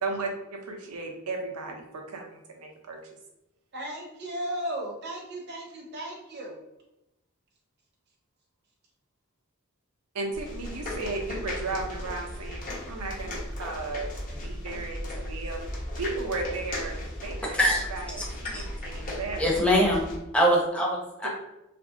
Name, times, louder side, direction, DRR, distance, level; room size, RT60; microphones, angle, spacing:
voice 1, 0.0-3.0 10.1-17.0 17.2-18.2 18.5-19.4 21.2-21.3, right 3 dB, 85° right, 2 dB, 0.6 m, -35 dB
voice 2, 3.7-6.6, right 1 dB, 50° right, -1 dB, 0.7 m, -35 dB
sound 1, 10.3-20.2, left 1 dB, 40° left, 0.7 m, -36 dB
voice 3, 19.4-21.3, equal, 5° left, -3 dB, 0.7 m, -23 dB
2.8 x 2.6 x 2.6 m, 0.90 s
head